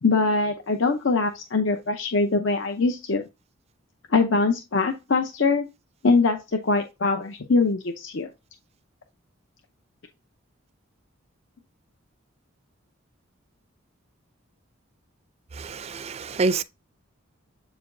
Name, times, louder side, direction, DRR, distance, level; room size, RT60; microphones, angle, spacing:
voice 1, 0.0-3.2 4.1-5.7 6.0-6.4 6.6-8.3, left 3 dB, 60° left, 0.7 m, -22 dB
voice 2, 15.6-16.6, right 3 dB, 30° right, 0.3 m, -26 dB
7.9 x 5.0 x 2.6 m
head